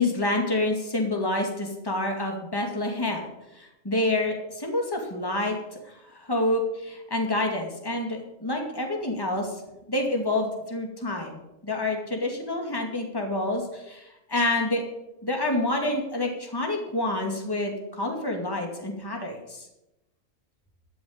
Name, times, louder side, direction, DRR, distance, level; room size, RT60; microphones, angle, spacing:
voice 1, 0.0-3.3 3.5-5.6 5.8-9.6 9.9-14.8 15.2-19.7, left 2 dB, 15° left, 2 dB, 2.4 m, -28 dB
13.0 x 7.1 x 8.8 m, 0.91 s
omnidirectional pair, 1.4 m